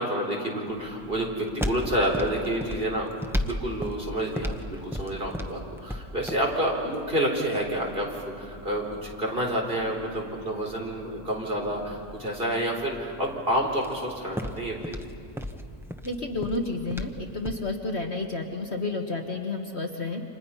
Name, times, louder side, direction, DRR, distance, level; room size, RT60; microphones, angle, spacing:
voice 1, 0.0-3.1 3.4-8.1 8.4-15.0, right 1 dB, 35° right, -1 dB, 4.2 m, -29 dB
sound 1, 0.7-17.7, equal, ahead, 0.9 m, -37 dB
voice 2, 16.0-20.2, left 2 dB, 45° left, 3 dB, 1.6 m, -31 dB
29.5 x 27.0 x 5.7 m, 2.6 s
omnidirectional pair, 1.6 m